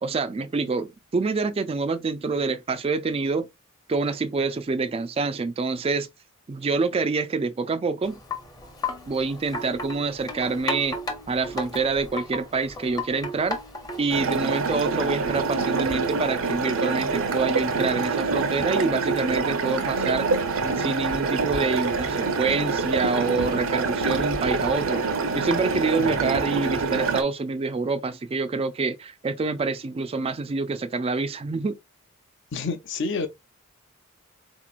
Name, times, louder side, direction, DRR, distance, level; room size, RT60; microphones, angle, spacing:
voice 1, 0.0-3.5 3.9-6.1 6.5-8.2 9.1-11.0 11.3-13.6 14.0-20.3 20.6-25.1 25.3-31.8, right 4 dB, 25° right, 0.3 m, -26 dB
Wind chime, 8.0-14.2, left 2 dB, 20° left, 0.7 m, -34 dB
sound 1, 14.1-27.2, right 4 dB, 70° right, 0.7 m, -26 dB
voice 2, 32.5-33.3, left 4 dB, 60° left, 0.6 m, -29 dB
4.0 x 3.0 x 2.3 m
head